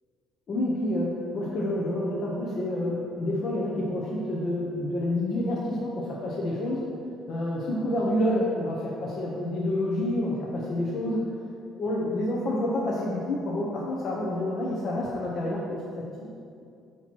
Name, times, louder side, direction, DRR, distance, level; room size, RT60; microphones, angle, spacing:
voice 1, 0.5-6.9 7.3-11.2 11.7-15.8, left 1 dB, 40° left, -5 dB, 0.9 m, -28 dB
8.5 x 2.9 x 6.1 m, 2.4 s
cardioid pair, 165°, 0 cm